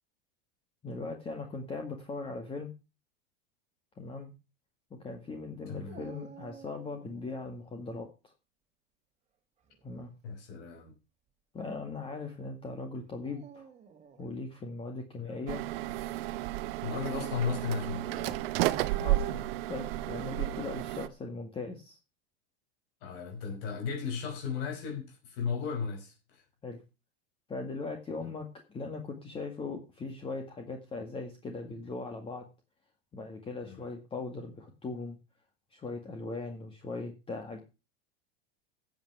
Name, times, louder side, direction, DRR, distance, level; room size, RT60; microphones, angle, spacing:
voice 1, 0.8-2.7 4.0-4.3 5.0-8.3 9.8-10.1 11.5-13.7 14.2-15.6 19.0-22.0 26.6-26.8 27.5-32.5 33.1-35.2 35.7-37.6, left 3 dB, 15° left, 1.9 m, -39 dB
Dog, 5.9-7.5 9.6-10.1 10.9-11.0 13.1-14.4 16.8-17.8, right 7 dB, 20° right, 2.2 m, -51 dB
voice 2, 10.2-10.9 15.2-15.3 16.8-18.8 23.0-26.4 28.2-28.3 33.6-33.9, left 6 dB, 65° left, 5.4 m, -36 dB
sound 1, 15.5-21.1, right 15 dB, 70° right, 1.0 m, -32 dB
14.0 x 8.1 x 4.8 m
supercardioid pair, 145°, 31 cm